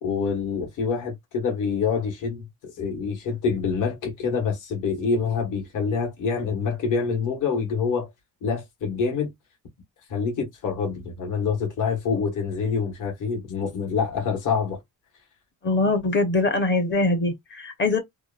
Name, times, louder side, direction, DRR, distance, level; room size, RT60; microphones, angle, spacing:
voice 1, 0.0-8.1 8.4-9.3 10.1-14.8, left 5 dB, 55° left, 1.2 m, -26 dB
voice 2, 15.6-18.0, left 2 dB, 30° left, 0.7 m, -22 dB
2.9 x 2.2 x 2.3 m
cardioid pair, 140°, 36 cm